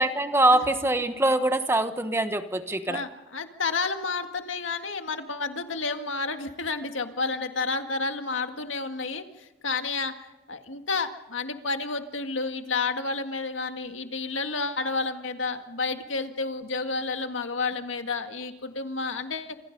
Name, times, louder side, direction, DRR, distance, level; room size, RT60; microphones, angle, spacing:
voice 1, 0.0-3.0, right 2 dB, 15° right, 9 dB, 1.1 m, -23 dB
voice 2, 2.9-10.2 10.5-19.6, left 4 dB, 80° left, 6 dB, 1.9 m, -30 dB
27.5 x 26.5 x 5.3 m, 1.0 s
head